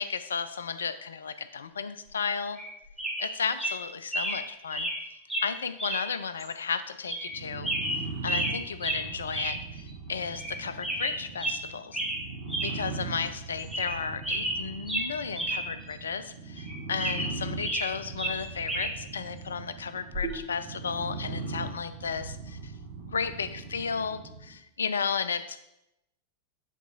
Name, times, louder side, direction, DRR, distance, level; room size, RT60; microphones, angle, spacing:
voice 1, 0.0-2.6 3.2-4.9 5.4-7.7 8.2-12.0 12.6-22.7 23.1-25.6, left 6 dB, 70° left, 12 dB, 0.4 m, -33 dB
sound 1, 2.5-2.7 3.0-3.3 3.6-3.7 4.1-4.4 4.7-5.0 5.3-5.5 5.8-6.0 6.4-6.5 7.1-7.3 7.6-8.6 8.8-9.0 9.3-9.6 9.9-10.0 10.3-10.5 10.8-11.6 11.9-12.2 12.5-12.7 13.1-13.2 13.6-14.0 14.2-15.6 15.9-16.0 16.6-17.9 18.2-18.9 20.1-20.3, right 1 dB, ahead, 2.2 m, -31 dB
sound 2, 7.3-24.5, right 4 dB, 65° right, 1.8 m, -40 dB
8.3 x 4.1 x 4.0 m, 0.85 s
figure-of-eight pair, 90°, 0 cm